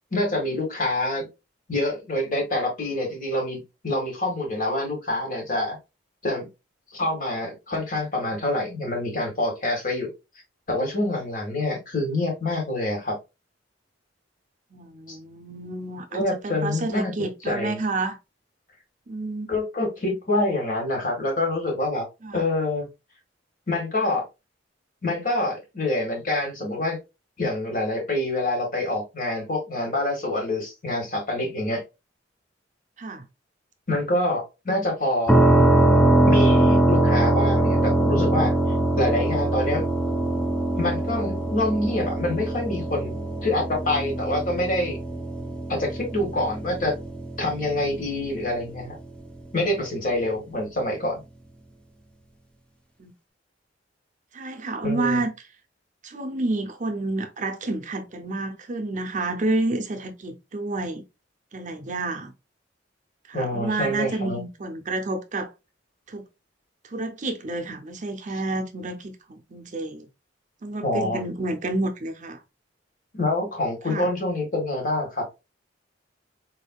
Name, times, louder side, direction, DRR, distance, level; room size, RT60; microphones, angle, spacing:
voice 1, 0.1-1.3 1.7-5.8 6.2-6.4 6.9-10.1 10.7-13.2 15.1-15.2 16.1-17.8 19.5-22.0 22.3-22.9 23.7-24.3 25.0-27.0 27.4-31.8 33.9-35.4 36.2-38.5 39.0-39.8 40.8-45.0 45.7-46.9 47.4-48.9 49.5-51.2 54.8-55.2 63.3-64.4 70.8-71.2 73.1-75.3, left 1 dB, 50° left, 1.7 m, -26 dB
voice 2, 14.7-18.2 19.1-19.5 22.2-22.5 33.0-33.2 53.0-53.1 54.3-55.3 56.0-61.0 61.5-62.3 63.3-65.5 66.1-66.3 66.8-70.1 70.6-72.4 73.9-74.1, right 2 dB, 40° right, 0.6 m, -29 dB
sound 1, 35.3-49.0, right 1 dB, 5° left, 0.6 m, -22 dB
4.3 x 3.5 x 2.3 m
head